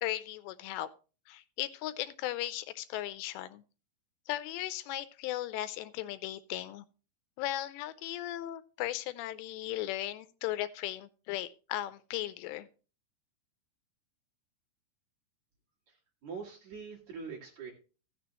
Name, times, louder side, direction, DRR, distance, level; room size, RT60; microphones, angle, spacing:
voice 1, 0.0-0.9 1.3-3.6 4.3-6.8 7.4-12.7, left 14 dB, 85° left, 13 dB, 2.8 m, -37 dB
voice 2, 16.2-17.7, right 5 dB, 50° right, -3 dB, 2.8 m, -43 dB
16.0 x 6.7 x 3.0 m, 0.34 s
omnidirectional pair, 5.0 m